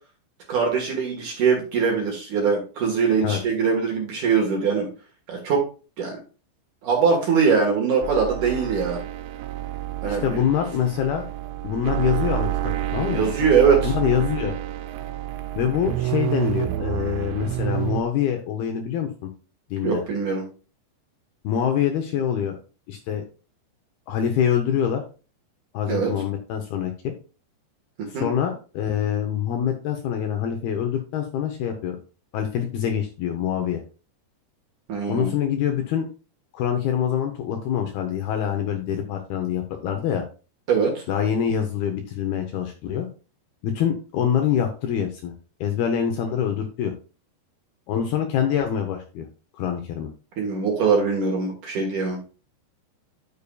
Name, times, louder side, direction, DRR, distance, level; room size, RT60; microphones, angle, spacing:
voice 1, 0.5-4.9 5.3-5.6 6.0-6.2 6.8-9.0 10.0-10.4 13.1-13.9 19.8-20.4 25.9-26.1 28.0-28.3 34.9-35.3 40.7-41.0 50.4-52.2, right 5 dB, 60° right, 0 dB, 2.3 m, -22 dB
sound 1, 8.0-18.0, right 13 dB, 90° right, 3.1 m, -29 dB
voice 2, 10.0-11.3 11.6-13.3 13.8-14.6 15.6-19.3 19.7-20.0 21.4-22.6 22.9-23.2 24.1-25.0 25.7-27.1 28.1-32.0 32.3-33.8 35.1-36.1 36.5-40.2 41.1-43.1 43.6-45.3 45.6-46.9 47.9-49.3 49.5-50.1, left 9 dB, 75° left, 5 dB, 2.3 m, -25 dB
12.0 x 6.9 x 2.3 m, 0.36 s
omnidirectional pair, 5.2 m